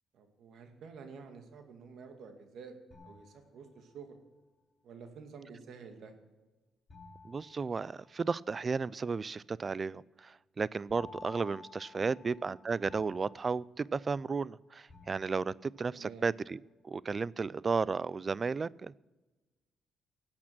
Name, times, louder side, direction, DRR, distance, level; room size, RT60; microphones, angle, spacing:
voice 1, 0.1-2.8 3.0-4.2 4.8-6.1 11.9-12.1 15.9-16.2, right 5 dB, 70° right, 6 dB, 2.2 m, -50 dB
sound 1, 2.9-4.1 6.9-8.5 10.9-14.5 14.9-15.8, left 3 dB, 40° left, 3.8 m, -54 dB
voice 2, 7.2-16.6 16.8-19.0, right 4 dB, 35° right, 23 dB, 0.3 m, -34 dB
16.5 x 8.7 x 6.1 m, 1.2 s
cardioid pair, 90°, 0 cm